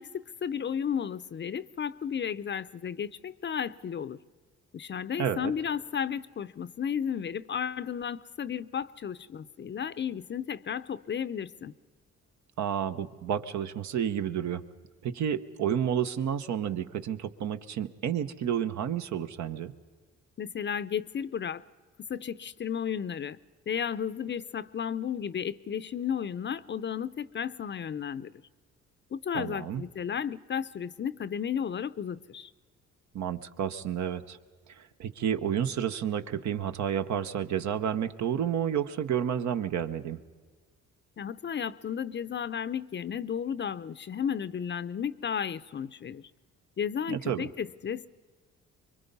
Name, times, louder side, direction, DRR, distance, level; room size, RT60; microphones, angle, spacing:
voice 1, 0.0-4.2 4.7-11.7 20.4-21.6 22.1-23.4 23.7-28.3 29.1-32.5 41.2-46.3 46.8-48.1, left 8 dB, 40° left, 0.6 m, -33 dB
voice 2, 5.2-5.5 12.6-14.6 15.0-19.7 29.3-29.8 33.1-34.4 34.8-40.2 47.1-47.4, right 9 dB, 70° right, 1.0 m, -30 dB
25.0 x 23.0 x 5.4 m
cardioid pair, 90°, 30 cm